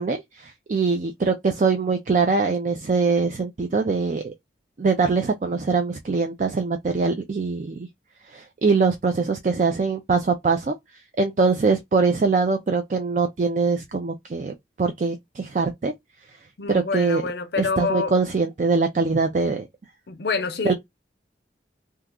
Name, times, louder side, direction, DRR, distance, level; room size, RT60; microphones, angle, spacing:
voice 1, 0.0-4.3 4.8-7.8 8.3-10.7 11.2-15.9 16.7-17.2 17.6-19.7 20.6-20.7, right 4 dB, 45° right, 0.4 m, -23 dB
voice 2, 16.6-18.1 20.1-20.7, left 4 dB, 65° left, 0.6 m, -27 dB
2.8 x 2.3 x 3.5 m
head